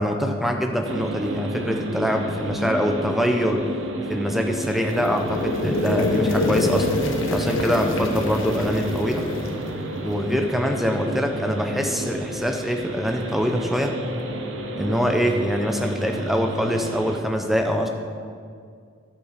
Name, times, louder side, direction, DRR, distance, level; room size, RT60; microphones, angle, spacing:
voice 1, 0.0-3.7 4.1-6.9 7.3-9.3 10.0-13.9 14.8-17.9, equal, ahead, 3 dB, 0.6 m, -24 dB
sound 1, 0.9-17.2, right 2 dB, 70° right, 0.8 m, -32 dB
sound 2, 4.3-10.3, left 2 dB, 85° left, 1.0 m, -26 dB
10.0 x 7.3 x 4.9 m, 2.2 s
head